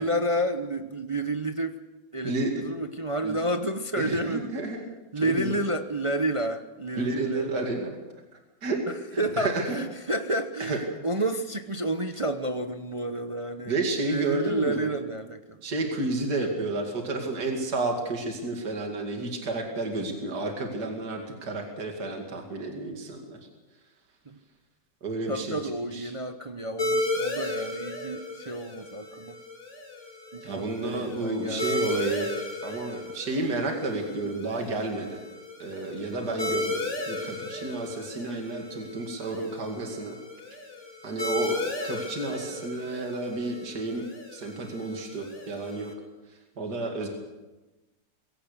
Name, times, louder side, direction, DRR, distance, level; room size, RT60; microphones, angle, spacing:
voice 1, 0.0-1.7 2.1-4.5 5.1-7.7 8.9-13.8 14.0-15.6 24.3-24.4 25.3-29.3 30.3-32.0, right 1 dB, 30° right, 7 dB, 0.6 m, -30 dB
voice 2, 4.0-4.8 5.2-5.6 7.0-8.0 8.6-8.8 9.1-9.8 10.6-10.8 13.6-14.9 15.6-23.4 25.0-25.6 25.9-26.1 30.4-32.3 32.6-35.2 35.6-40.2 41.0-41.6 41.8-44.1 44.3-45.9 46.6-47.1, right 2 dB, 60° right, 2 dB, 2.9 m, -31 dB
sound 1, 26.8-45.9, left 2 dB, 40° left, 3.0 m, -35 dB
22.5 x 17.0 x 6.8 m, 1.1 s
omnidirectional pair, 2.0 m